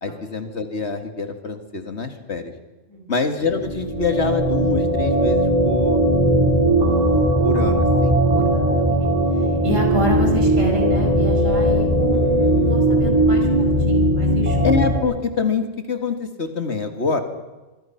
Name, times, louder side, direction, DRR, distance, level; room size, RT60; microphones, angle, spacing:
voice 1, 0.0-2.5 3.1-6.0 6.8-8.2 14.6-17.2, left 4 dB, 60° left, 7 dB, 2.3 m, -25 dB
sound 1, 3.4-15.0, right 1 dB, 30° right, 4.4 m, -18 dB
voice 2, 8.3-9.1 9.6-14.7, equal, 80° right, 2 dB, 5.5 m, -28 dB
26.0 x 23.0 x 5.9 m, 1.1 s
omnidirectional pair, 1.3 m